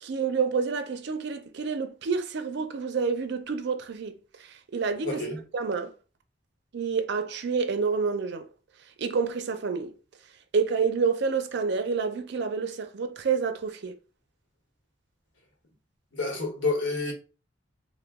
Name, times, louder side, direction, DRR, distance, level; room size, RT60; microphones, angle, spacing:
voice 1, 0.0-4.1 4.7-5.2 5.5-5.9 6.7-8.5 9.0-9.9 10.5-13.9, right 5 dB, 65° right, 0.4 m, -28 dB
voice 2, 5.0-5.4 16.1-17.1, left 3 dB, 70° left, 1.0 m, -28 dB
2.9 x 2.1 x 3.4 m
head